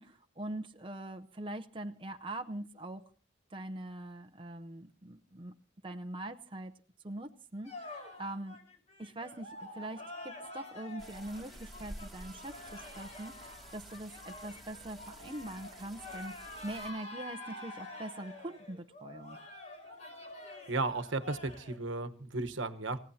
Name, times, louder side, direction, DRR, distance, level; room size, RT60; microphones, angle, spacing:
voice 1, 0.0-3.0 3.5-5.5 5.8-6.7 7.0-8.6 9.0-19.4, right 1 dB, 25° right, 6 dB, 0.7 m, -43 dB
sound 1, 7.6-21.8, left 2 dB, 35° left, 4.7 m, -48 dB
sound 2, 11.0-16.9, right 1 dB, ahead, 2.4 m, -51 dB
voice 2, 20.7-23.0, right 3 dB, 80° right, 9 dB, 1.2 m, -34 dB
28.0 x 16.0 x 2.8 m, 0.38 s
head